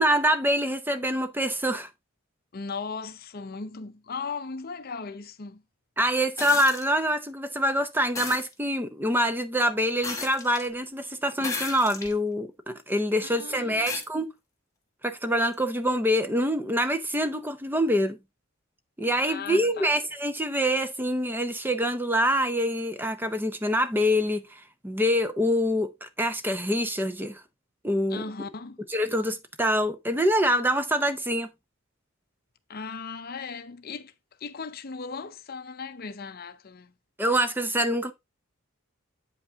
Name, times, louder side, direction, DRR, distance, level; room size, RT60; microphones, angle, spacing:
voice 1, 0.0-1.9 6.0-14.3 15.0-18.2 19.0-27.4 27.8-28.2 28.9-31.5 37.2-38.1, equal, 10° right, 0.7 m, -25 dB
voice 2, 2.5-5.6 13.2-13.9 19.2-20.0 28.1-28.8 32.7-34.1 34.4-36.9, left 4 dB, 45° left, 0.6 m, -37 dB
sound 1, 6.4-6.9 8.2-8.5 10.0-10.7 11.4-12.1 12.8-12.9 13.9-14.1 15.5-15.6, left 4 dB, 15° left, 1.5 m, -34 dB
8.4 x 5.3 x 3.4 m
head